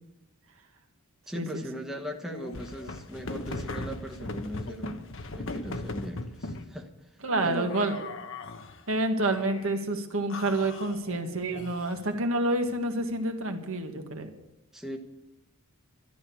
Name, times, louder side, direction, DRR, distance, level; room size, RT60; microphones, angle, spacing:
voice 1, 1.3-6.9 7.4-7.8 14.7-15.0, equal, ahead, 2 dB, 1.1 m, -39 dB
sound 1, 2.2-6.7 7.5-8.8 9.3-9.8 10.3-12.1, left 2 dB, 60° left, 1.0 m, -39 dB
voice 2, 7.2-8.0 8.9-14.3, right 2 dB, 65° right, 4 dB, 1.6 m, -28 dB
12.5 x 12.0 x 6.9 m, 0.93 s
head